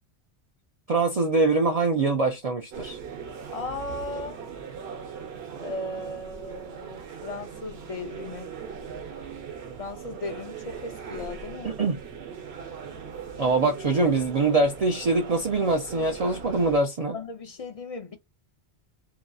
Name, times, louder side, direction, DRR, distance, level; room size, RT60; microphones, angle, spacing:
voice 1, 0.9-3.0 11.6-12.0 13.4-17.2, right 3 dB, 45° right, 0.5 m, -23 dB
sound 1, 2.7-16.8, right 6 dB, 75° right, 1.0 m, -40 dB
voice 2, 3.5-4.4 5.6-8.5 9.8-11.7 17.1-18.2, left 2 dB, 45° left, 0.5 m, -36 dB
2.8 x 2.4 x 2.2 m
omnidirectional pair, 1.1 m